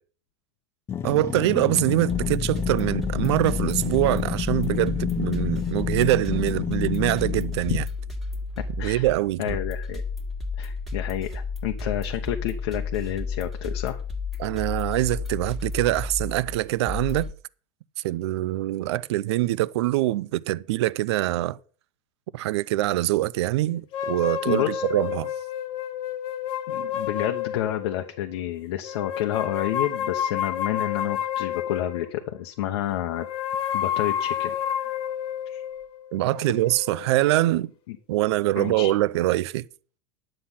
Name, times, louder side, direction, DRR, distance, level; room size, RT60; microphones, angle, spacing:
sound 1, 0.9-7.6, left 9 dB, 15° left, 0.4 m, -29 dB
voice 1, 1.0-7.8 8.8-9.6 14.4-17.3 18.0-21.6 22.3-25.3 36.1-37.7 38.1-39.6, right 16 dB, 85° right, 0.5 m, -24 dB
sound 2, 2.1-17.3, left 4 dB, ahead, 1.6 m, -32 dB
voice 2, 9.4-10.0 10.6-14.0 24.5-24.8 26.7-33.3 33.7-34.5 35.5-35.6 37.9-38.0 38.6-38.9, left 12 dB, 85° left, 1.0 m, -29 dB
sound 3, 23.9-28.1 28.8-32.3 33.1-37.5, left 9 dB, 40° left, 1.0 m, -30 dB
10.5 x 7.7 x 5.6 m
supercardioid pair, 155°, 14 cm